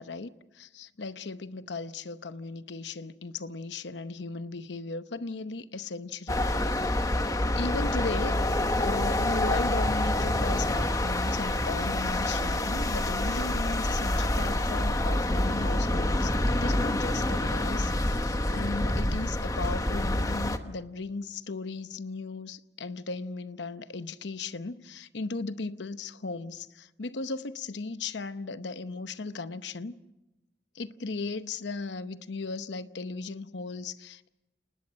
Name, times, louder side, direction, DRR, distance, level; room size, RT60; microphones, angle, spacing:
voice 1, 0.0-6.4 7.3-30.0 30.7-34.3, left 3 dB, 80° left, 0.8 m, -36 dB
sound 1, 6.3-20.6, left 1 dB, 20° left, 1.1 m, -27 dB
29.0 x 19.5 x 6.3 m
head